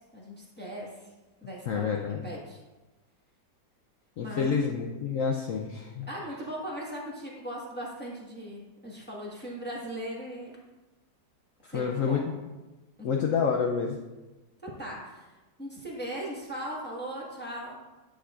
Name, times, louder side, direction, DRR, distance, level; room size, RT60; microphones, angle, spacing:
voice 1, 0.1-1.1 1.4-2.6 4.2-4.5 6.1-10.6 11.7-12.4 13.0-13.1 14.6-17.8, equal, 5° left, -5 dB, 1.1 m, -39 dB
voice 2, 1.7-2.2 4.2-6.1 11.7-12.3 13.0-14.0, left 6 dB, 75° left, 1 dB, 0.7 m, -28 dB
9.6 x 6.3 x 2.4 m, 1.1 s
omnidirectional pair, 2.0 m